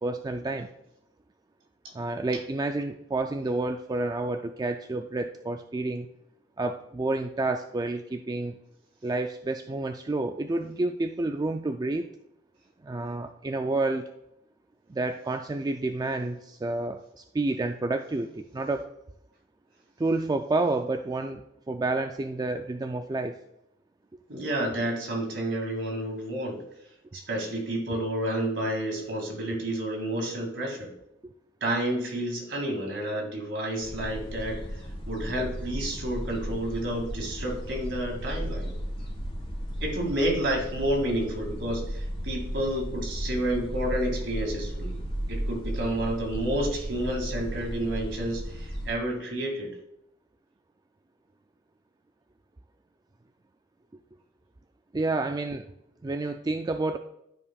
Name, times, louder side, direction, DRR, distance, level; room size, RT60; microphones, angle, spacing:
voice 1, 0.0-0.7 1.9-6.1 6.6-8.6 9.0-12.1 12.8-14.1 14.9-18.9 20.0-23.4 54.9-55.6 56.0-57.0, right 2 dB, 20° right, 6 dB, 0.3 m, -29 dB
voice 2, 24.3-26.6 27.1-30.9 31.6-34.6 35.1-38.7 39.8-45.0 45.3-49.7, right 1 dB, 65° right, 0 dB, 2.3 m, -30 dB
sound 1, 33.8-48.9, equal, 30° left, 1.4 m, -35 dB
12.5 x 5.3 x 2.3 m, 0.81 s
head